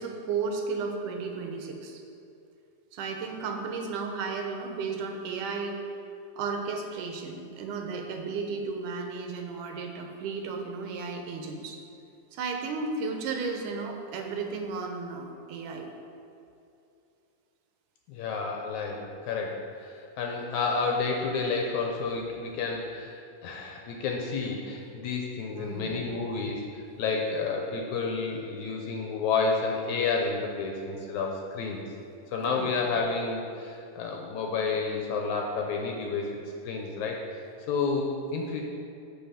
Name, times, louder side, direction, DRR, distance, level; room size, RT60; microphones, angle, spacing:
voice 1, 0.0-2.0 2.9-5.8 6.4-11.8 12.3-15.9 25.5-25.9 32.4-32.7, right 4 dB, 75° right, 3 dB, 2.3 m, -34 dB
voice 2, 18.1-31.8 32.3-36.4 36.7-38.6, left 4 dB, 75° left, 1 dB, 1.9 m, -30 dB
7.2 x 7.1 x 5.7 m, 2.6 s
omnidirectional pair, 3.9 m